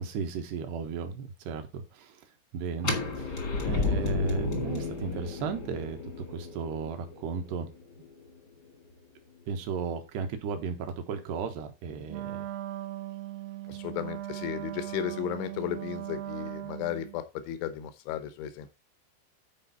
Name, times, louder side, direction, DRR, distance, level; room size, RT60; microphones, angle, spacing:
voice 1, 0.0-2.2 2.5-3.4 3.6-7.7 9.5-12.5 13.7-13.8, right 6 dB, 70° right, 6 dB, 3.3 m, -35 dB
sound 1, 2.8-8.6, left 3 dB, 50° left, 1.2 m, -33 dB
Wind instrument woodwind instrument, 12.1-17.2, right 14 dB, 85° right, 2.0 m, -38 dB
voice 2, 13.7-18.7, left 10 dB, 90° left, 11 dB, 3.3 m, -35 dB
11.0 x 4.8 x 4.1 m, 0.25 s
omnidirectional pair, 5.2 m